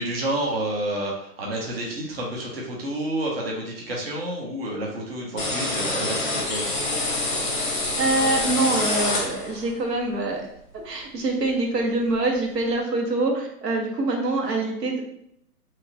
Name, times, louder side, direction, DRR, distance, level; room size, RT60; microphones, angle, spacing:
voice 1, 0.0-6.7, right 1 dB, 40° right, -2 dB, 0.6 m, -29 dB
sound 1, 5.4-9.7, left 2 dB, 35° left, 0.6 m, -26 dB
voice 2, 7.6-10.4 10.8-15.0, right 2 dB, 90° right, 1 dB, 1.0 m, -25 dB
2.9 x 2.3 x 2.7 m, 0.72 s
hypercardioid pair, 165°, 47 cm